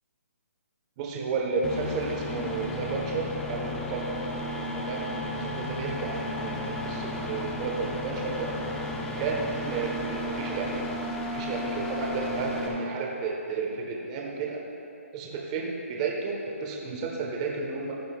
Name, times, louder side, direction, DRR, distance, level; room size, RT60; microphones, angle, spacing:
voice 1, 1.0-4.2 4.7-8.5 9.2-10.8 11.2-14.6 15.1-17.9, right 4 dB, 25° right, -1 dB, 1.3 m, -32 dB
sound 1, 1.6-12.7, left 1 dB, 5° left, 0.7 m, -33 dB
15.5 x 10.5 x 2.4 m, 2.8 s
hypercardioid pair, 165°, 8 cm